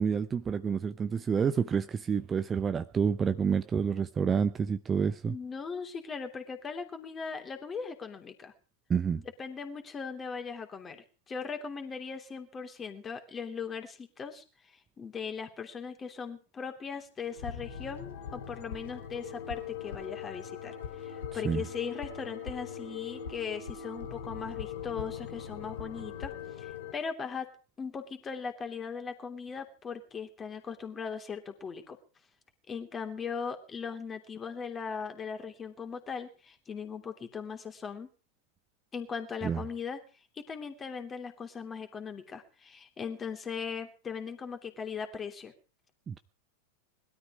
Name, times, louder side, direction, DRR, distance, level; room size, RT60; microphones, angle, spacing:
voice 1, 0.0-5.3 8.9-9.2 21.3-21.6 39.4-39.6 46.1-46.2, right 6 dB, 20° right, 12 dB, 0.7 m, -29 dB
voice 2, 5.2-8.5 9.1-27.5 27.8-32.0 32.7-38.1 38.9-40.0 40.3-45.5, left 6 dB, 20° left, 6 dB, 3.1 m, -39 dB
sound 1, 17.2-26.9, left 8 dB, 60° left, 2.4 m, -41 dB
21.0 x 13.0 x 4.9 m, 0.36 s
figure-of-eight pair, 90°, 0 cm